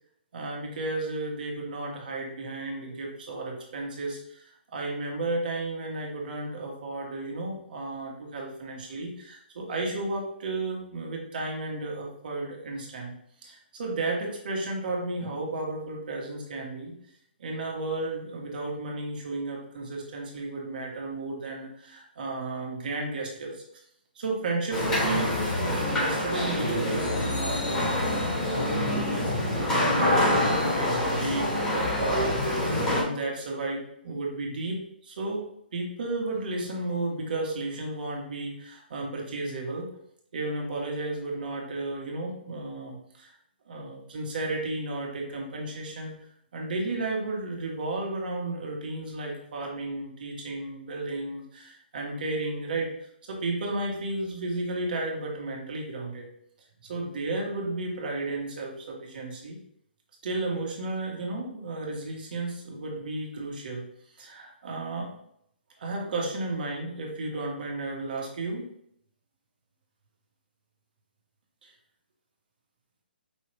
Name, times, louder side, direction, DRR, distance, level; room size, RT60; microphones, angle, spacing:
voice 1, 0.3-13.1 13.4-17.0 17.4-23.6 24.1-32.3 32.6-35.4 35.7-39.9 40.3-43.3 43.7-46.1 46.5-52.9 53.3-56.3 56.8-59.6 60.2-63.8 64.1-65.1 65.8-68.7 71.6-71.7, right 2 dB, 60° right, -1 dB, 1.5 m, -33 dB
sound 1, 24.7-33.0, left 1 dB, 15° left, 1.8 m, -26 dB
5.4 x 2.8 x 3.4 m, 0.72 s
figure-of-eight pair, 135°, 6 cm